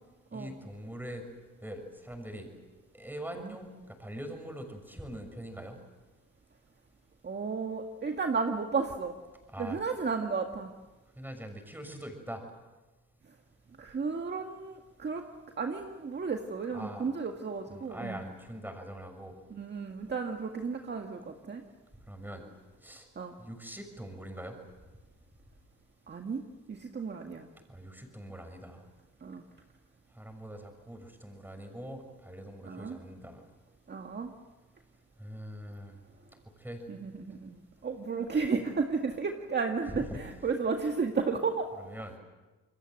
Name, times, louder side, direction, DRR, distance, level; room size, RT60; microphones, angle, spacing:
voice 1, 0.3-1.2 1.6-2.5 2.9-5.8 9.5-9.8 11.2-12.4 16.7-17.1 17.7-19.3 22.1-22.4 22.8-23.1 23.4-24.6 27.7-28.8 30.2-33.4 35.2-36.0 36.6-36.8 40.0-40.2 41.8-42.1, right 1 dB, 5° right, 5 dB, 6.5 m, -43 dB
voice 2, 7.2-9.2 9.6-10.7 13.8-15.2 15.6-18.2 19.5-21.6 23.2-23.4 26.1-26.4 26.7-27.5 29.2-29.4 32.6-33.0 33.9-34.3 36.9-41.7, right 5 dB, 35° right, 3 dB, 1.9 m, -33 dB
28.0 x 22.0 x 7.9 m, 1.2 s
cardioid pair, 90°, 30 cm